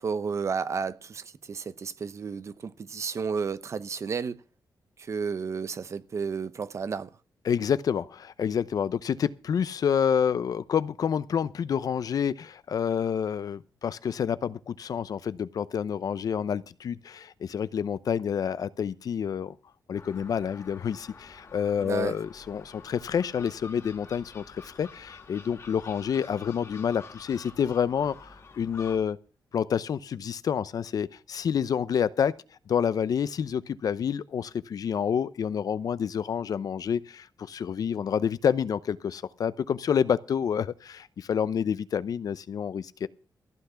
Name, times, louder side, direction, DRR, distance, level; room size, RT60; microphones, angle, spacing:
voice 1, 0.0-4.4 5.0-7.1 21.8-22.1, right 5 dB, 45° right, 0.8 m, -32 dB
voice 2, 7.4-19.5 19.9-28.3 28.6-29.2 29.5-32.3 32.7-43.1, left 7 dB, 60° left, 0.7 m, -28 dB
Gull seagull, 19.9-29.0, left 4 dB, 40° left, 2.7 m, -48 dB
15.0 x 5.9 x 8.2 m
wide cardioid pair, 165°, 7 cm